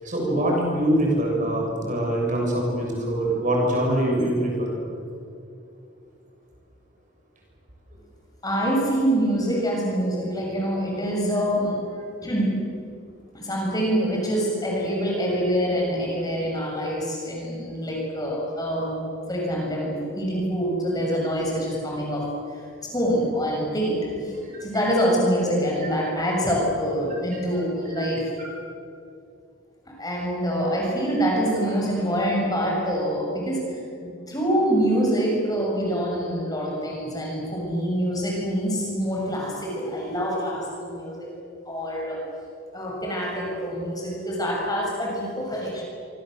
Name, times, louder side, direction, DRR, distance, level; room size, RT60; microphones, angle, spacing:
voice 1, 0.0-4.8 24.4-24.7 26.4-26.5 28.0-28.1 28.4-28.5, right 1 dB, 35° right, -1 dB, 7.0 m, -24 dB
voice 2, 8.4-12.6 13.3-19.0 19.3-24.3 24.6-28.3 30.0-41.3 41.6-42.2 42.7-45.8, equal, 20° left, -2 dB, 6.9 m, -25 dB
26.5 x 25.5 x 7.9 m, 2.5 s
head